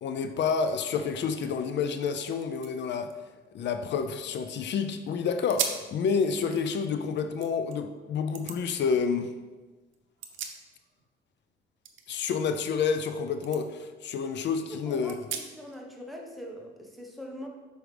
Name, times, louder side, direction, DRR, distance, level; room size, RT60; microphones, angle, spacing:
voice 1, 0.0-3.1 3.5-9.3 12.1-15.1, left 6 dB, 65° left, 8 dB, 0.5 m, -29 dB
sound 1, 2.0-2.1 2.4-4.6 5.0-5.1 5.5-5.9 6.4-7.8 8.3-8.6 9.9-11.1 11.3-13.1 13.4-13.6 14.1-14.2 15.1-15.8, right 7 dB, 80° right, 0.7 m, -39 dB
voice 2, 14.7-17.5, equal, ahead, -1 dB, 1.1 m, -42 dB
6.3 x 4.7 x 3.3 m, 1.2 s
cardioid pair, 90°, 20 cm